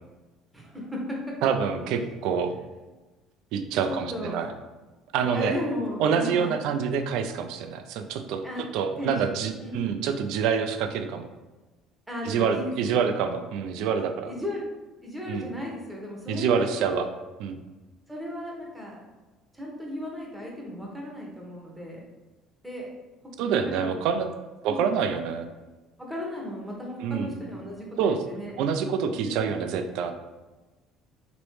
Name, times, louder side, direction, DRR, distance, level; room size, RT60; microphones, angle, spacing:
voice 1, 0.5-1.2 1.4-1.5 1.8-2.0 3.9-4.4 5.2-6.5 8.4-8.7 9.0-9.3 9.6-10.0 12.1-13.0 14.2-14.6 15.0-17.0 18.1-19.0 19.5-22.0 22.6-22.9 23.6-23.9 24.6-24.8 26.0-28.6 29.2-29.3, left 1 dB, 5° right, -2 dB, 1.1 m, -35 dB
voice 2, 1.4-2.6 3.5-4.5 5.1-5.6 6.0-8.4 8.7-11.3 12.2-14.3 15.3-15.5 16.3-17.1 17.4-17.6 23.4-24.3 24.6-25.5 27.0-27.4 28.0-28.2 28.6-30.1, right 6 dB, 75° right, 8 dB, 0.3 m, -26 dB
3.1 x 3.0 x 3.1 m, 1.2 s
supercardioid pair, 80°, 0 cm